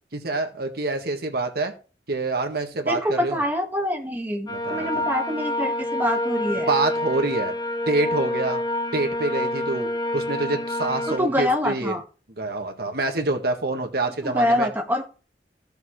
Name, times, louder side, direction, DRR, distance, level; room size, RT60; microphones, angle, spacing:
voice 1, 0.1-1.7 2.1-3.4 4.5-5.1 6.7-7.5 7.9-8.6 8.9-9.9 10.1-12.0 12.4-14.7, right 2 dB, 60° right, 4 dB, 1.7 m, -26 dB
voice 2, 2.9-6.7 11.1-12.0 14.2-15.0, left 1 dB, 10° right, 2 dB, 1.7 m, -25 dB
sound 1, 4.5-11.2, left 1 dB, 25° left, 0.6 m, -27 dB
15.0 x 6.8 x 3.2 m, 0.36 s
head